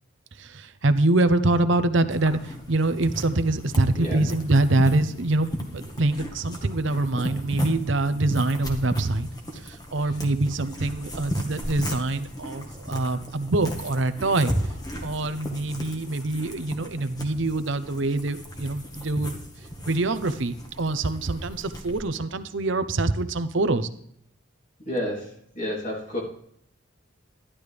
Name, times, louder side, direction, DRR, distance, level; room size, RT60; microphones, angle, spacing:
voice 1, 0.4-9.3 9.5-14.5 15.0-19.4 19.9-23.9, right 2 dB, 65° right, 12 dB, 0.8 m, -25 dB
sound 1, 2.1-22.0, equal, 20° left, 1.5 m, -35 dB
voice 2, 24.9-25.3 25.5-26.2, left 1 dB, 40° left, -2 dB, 3.1 m, -29 dB
12.5 x 11.5 x 3.4 m, 0.69 s
head